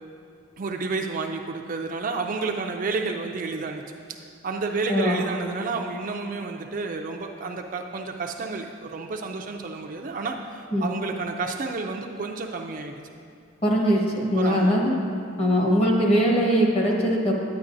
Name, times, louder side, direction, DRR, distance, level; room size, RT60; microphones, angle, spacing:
voice 1, 0.6-3.8 4.1-12.9 14.3-14.7, right 4 dB, 40° right, 3 dB, 0.4 m, -30 dB
voice 2, 4.9-5.3 10.7-10.9 13.6-14.0 14.3-14.9 15.4-17.3, equal, 30° left, -2 dB, 1.1 m, -21 dB
9.5 x 9.4 x 2.6 m, 2.4 s
head